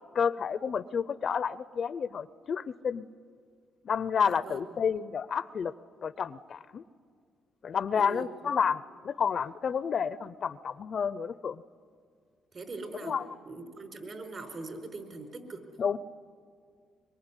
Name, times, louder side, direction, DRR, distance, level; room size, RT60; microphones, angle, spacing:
voice 1, 0.1-3.0 3.8-5.7 6.0-6.8 7.6-11.6 13.0-13.3 15.8-16.0, left 7 dB, 50° left, 16 dB, 0.6 m, -30 dB
voice 2, 4.2-4.6 7.9-8.5 12.5-13.2 13.4-15.6, right 3 dB, 45° right, 5 dB, 4.6 m, -42 dB
23.5 x 23.5 x 9.8 m, 2.1 s
cardioid pair, 90°, 0 cm